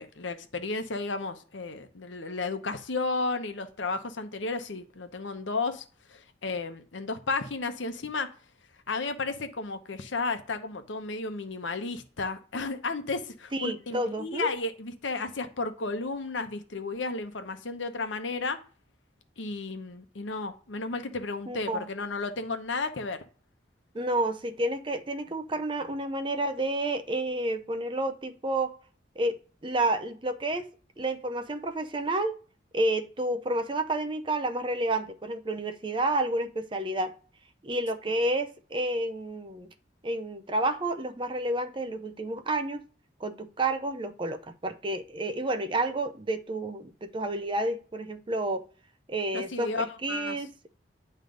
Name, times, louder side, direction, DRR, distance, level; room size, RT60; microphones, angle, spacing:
voice 1, 0.0-8.3 8.9-18.6 19.4-23.2 49.3-50.4, left 3 dB, 80° left, 0.9 m, -33 dB
voice 2, 13.5-14.5 21.5-21.9 23.9-28.8 29.2-30.7 31.0-32.4 32.7-37.1 37.6-39.7 40.0-42.9 43.2-48.7 49.1-50.7, right 2 dB, 25° right, 0.5 m, -30 dB
9.3 x 3.3 x 5.1 m
head